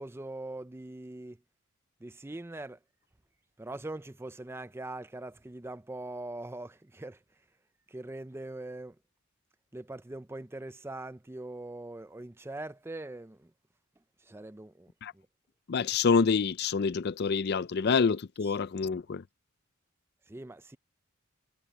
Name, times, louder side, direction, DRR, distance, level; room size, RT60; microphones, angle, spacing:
voice 1, 0.0-1.4 2.0-2.8 3.6-7.2 7.9-9.0 9.7-13.5 14.2-15.3 18.4-18.5 20.3-20.8, right 2 dB, 10° right, 0.4 m, -42 dB
voice 2, 15.7-19.2, left 5 dB, 45° left, 0.4 m, -27 dB
head